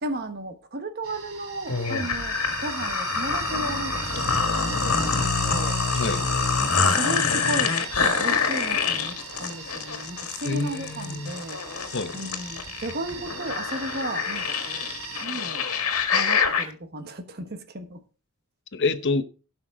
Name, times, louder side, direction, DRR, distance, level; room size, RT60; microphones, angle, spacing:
voice 1, 0.0-5.1 5.4-5.8 6.7-11.6 12.1-14.9 15.2-15.7 16.1-18.0, right 1 dB, 45° right, 1.2 m, -35 dB
sound 1, 1.0-15.2, right 5 dB, 80° right, 2.8 m, -38 dB
sound 2, 1.7-16.7, left 5 dB, 80° left, 1.8 m, -26 dB
voice 2, 5.9-6.3 10.4-11.3 11.9-12.2 18.7-19.2, left 3 dB, 55° left, 0.8 m, -27 dB
17.0 x 5.8 x 3.7 m
head